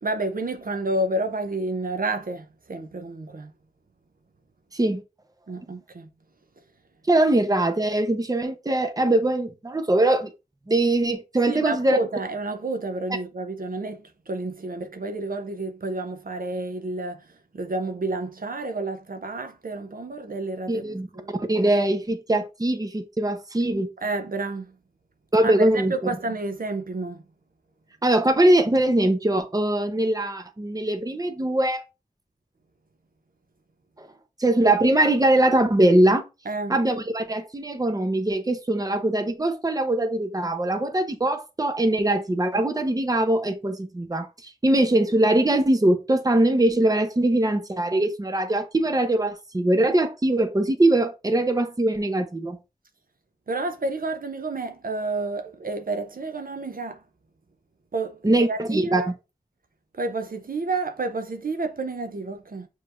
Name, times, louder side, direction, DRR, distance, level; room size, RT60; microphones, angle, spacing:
voice 1, 0.0-3.5 5.5-6.1 11.5-17.2 17.5-20.9 21.1-21.3 24.0-24.7 25.4-27.2 36.5-36.8 53.5-57.0 57.9-59.1 60.0-62.7, right 2 dB, 65° right, 0.6 m, -30 dB
voice 2, 7.1-10.3 10.7-12.0 20.7-23.9 25.3-25.9 28.0-31.8 34.0-34.1 34.4-36.2 36.7-52.6 58.2-59.0, right 1 dB, 25° right, 0.7 m, -22 dB
6.7 x 3.1 x 2.5 m
wide cardioid pair, 65°, 16 cm